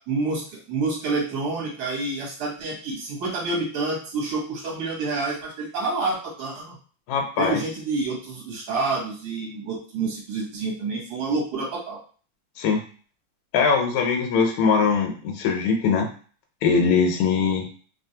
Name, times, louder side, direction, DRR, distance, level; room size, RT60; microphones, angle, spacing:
voice 1, 0.1-6.8 7.4-12.0, right 3 dB, 55° right, -3 dB, 1.4 m, -28 dB
voice 2, 7.1-7.6 12.6-12.8 13.5-16.1 16.6-17.7, left 5 dB, 80° left, 2 dB, 1.3 m, -21 dB
3.3 x 2.3 x 2.7 m, 0.41 s
omnidirectional pair, 2.3 m